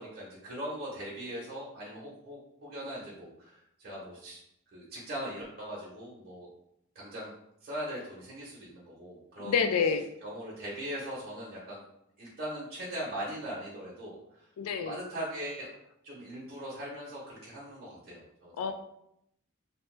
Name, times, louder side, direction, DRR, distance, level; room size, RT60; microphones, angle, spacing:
voice 1, 0.0-4.4 4.7-6.5 6.9-7.3 7.6-9.6 10.2-11.8 12.2-15.7 16.0-18.5, equal, 45° right, -6 dB, 0.7 m, -40 dB
voice 2, 9.4-10.1 14.6-15.0 18.6-18.7, left 6 dB, 75° left, 8 dB, 0.3 m, -28 dB
2.8 x 2.2 x 3.1 m, 0.77 s
head